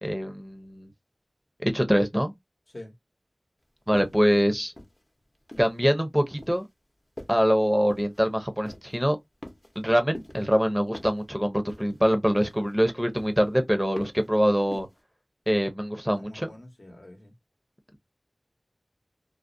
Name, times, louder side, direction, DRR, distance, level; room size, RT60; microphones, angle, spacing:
voice 1, 0.0-0.9 1.6-2.3 3.9-4.7 5.6-6.7 7.3-9.2 9.8-14.9 15.5-16.5, equal, 5° right, 0.5 m, -24 dB
sound 1, 3.9-4.3 4.8-5.8 6.4-6.7 7.2-7.5 7.9-8.2 8.6-9.0 9.4-9.9 10.1-10.5 10.9-11.3 11.7-12.1 12.4-12.8 13.2-13.5 14.0-14.3 14.7-15.0, left 1 dB, 35° left, 0.7 m, -44 dB
voice 2, 16.2-17.3, left 1 dB, 65° left, 0.9 m, -45 dB
2.4 x 2.0 x 2.5 m
wide cardioid pair, 50°, 0 cm